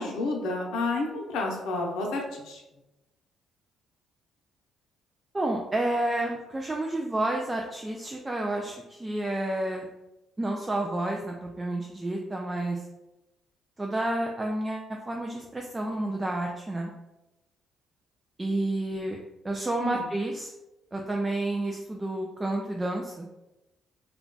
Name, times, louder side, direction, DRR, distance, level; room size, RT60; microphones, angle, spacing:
voice 1, 0.0-2.6 19.8-20.0, left 2 dB, 80° left, 0 dB, 0.6 m, -30 dB
voice 2, 5.3-9.9 10.4-12.8 13.8-16.9 18.4-19.2 19.4-20.5 20.9-23.3, right 1 dB, 20° right, 1 dB, 0.3 m, -30 dB
2.3 x 2.2 x 3.8 m, 0.97 s
cardioid pair, 95°, 0 cm